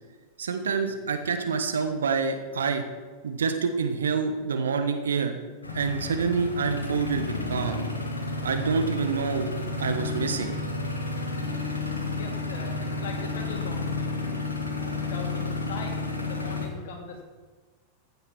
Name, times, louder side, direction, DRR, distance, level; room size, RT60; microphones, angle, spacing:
voice 1, 0.4-2.8 3.2-5.4 5.7-7.8 8.4-10.5, right 5 dB, 65° right, 7 dB, 1.4 m, -27 dB
sound 1, 5.6-16.7, left 3 dB, 80° left, 1.9 m, -31 dB
voice 2, 12.2-14.3 14.8-17.2, left 5 dB, 55° left, 2 dB, 2.7 m, -41 dB
15.0 x 7.8 x 6.2 m, 1.4 s
figure-of-eight pair, 90°, 0 cm